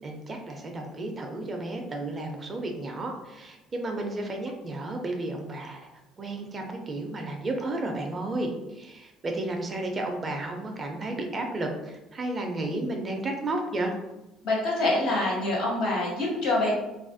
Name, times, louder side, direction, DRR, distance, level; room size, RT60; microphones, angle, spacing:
voice 1, 0.0-5.9 6.2-14.0, right 2 dB, 25° right, 3 dB, 0.4 m, -32 dB
voice 2, 14.4-16.7, left 2 dB, 70° left, -4 dB, 1.3 m, -25 dB
3.0 x 2.3 x 2.5 m, 0.99 s
cardioid pair, 145°, 0 cm